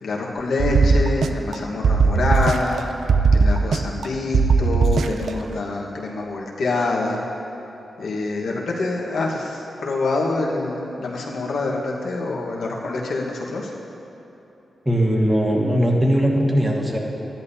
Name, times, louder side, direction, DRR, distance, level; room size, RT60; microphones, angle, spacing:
voice 1, 0.0-2.8 3.3-7.2 8.0-13.7, left 3 dB, 80° left, -2 dB, 1.3 m, -26 dB
sound 1, 0.6-1.6 1.8-2.8 3.1-4.1 4.3-5.3, right 4 dB, 75° right, 0.4 m, -18 dB
voice 2, 14.8-17.0, equal, 20° right, -1 dB, 1.7 m, -19 dB
13.5 x 10.5 x 2.8 m, 3.0 s
cardioid pair, 55°, 0 cm